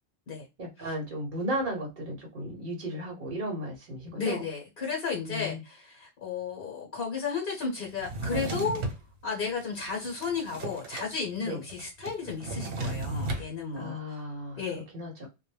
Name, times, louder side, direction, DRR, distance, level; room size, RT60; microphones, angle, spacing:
voice 1, 0.6-4.4 5.3-5.6 11.4-11.6 13.7-15.3, right 1 dB, 55° right, 0.9 m, -35 dB
voice 2, 4.1-8.8 9.2-14.2 14.5-14.8, left 5 dB, 60° left, 1.0 m, -33 dB
Drawer open or close, 8.0-9.0 9.6-11.1 11.4-11.5 11.7-13.5, right 2 dB, 90° right, 1.0 m, -34 dB
2.2 x 2.1 x 3.1 m
omnidirectional pair, 1.1 m